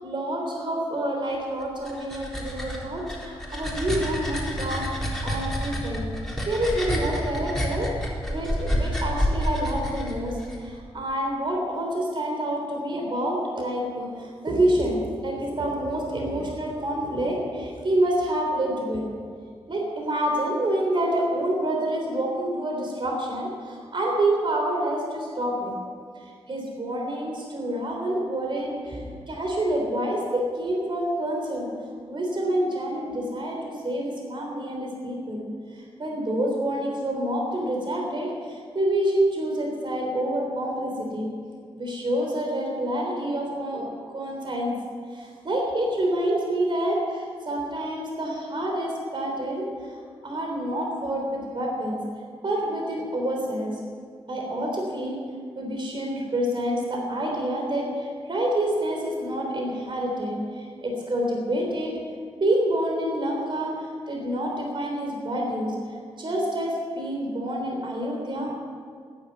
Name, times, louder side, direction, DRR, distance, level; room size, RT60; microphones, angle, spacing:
voice 1, 0.0-5.0 5.2-6.1 6.5-7.9 8.3-19.0 19.7-25.7 26.5-31.7 32.1-35.5 35.7-41.3 41.8-44.8 45.1-49.9 50.2-52.0 52.4-53.7 54.3-55.2 55.6-61.9 62.4-65.7 66.2-68.6, right 1 dB, 50° right, 0 dB, 3.6 m, -27 dB
sound 1, 1.6-10.6, equal, 5° left, 4.0 m, -29 dB
14.0 x 11.0 x 9.2 m, 2.1 s
cardioid pair, 80°, 11 cm